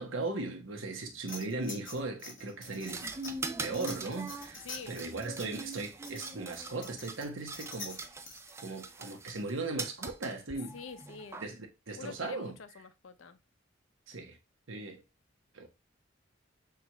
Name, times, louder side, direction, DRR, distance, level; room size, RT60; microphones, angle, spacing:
voice 1, 0.0-3.3 3.6-8.0 8.6-10.7 11.4-12.6 14.1-14.4 14.7-15.0 15.5-15.7, right 3 dB, 85° right, 1.0 m, -38 dB
sound 1, 1.3-8.5, left 3 dB, 45° left, 1.6 m, -46 dB
sound 2, 2.9-9.5 9.8-11.5, right 3 dB, 15° right, 0.3 m, -42 dB
voice 2, 4.6-5.0 10.7-11.4 12.0-13.4, left 5 dB, 85° left, 0.6 m, -46 dB
5.9 x 2.5 x 2.9 m
head